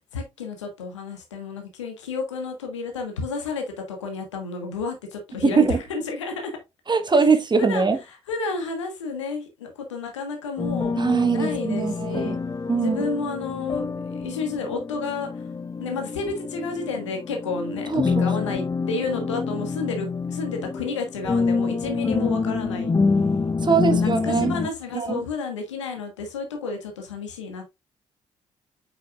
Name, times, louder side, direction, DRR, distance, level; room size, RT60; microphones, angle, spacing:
voice 1, 0.1-6.5 7.6-7.9 8.3-10.9 11.3-12.4 12.7-15.5 15.8-17.9 18.2-22.9 23.7-27.6, left 4 dB, 85° left, 1.5 m, -31 dB
voice 2, 5.4-5.8 6.9-8.0 10.9-12.4 12.7-13.1 17.9-18.3 23.6-24.6 24.9-25.2, right 5 dB, 30° right, 1.4 m, -22 dB
sound 1, 10.6-24.7, left 4 dB, 25° left, 0.8 m, -27 dB
7.7 x 6.6 x 2.4 m
figure-of-eight pair, 40°, 15 cm